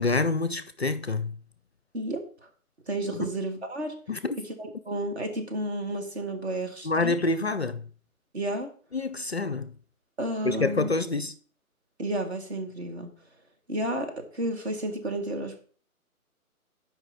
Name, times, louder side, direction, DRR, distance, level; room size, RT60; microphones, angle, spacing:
voice 1, 0.0-1.3 3.1-3.3 4.1-4.4 6.8-7.8 8.9-9.7 10.4-11.3, left 3 dB, 50° left, 0.4 m, -27 dB
voice 2, 1.9-2.3 2.9-4.0 4.6-7.1 8.3-8.7 10.2-10.9 12.0-13.1 13.7-15.6, right 1 dB, 45° right, 1.5 m, -31 dB
6.4 x 4.9 x 4.5 m
figure-of-eight pair, 145°, 44 cm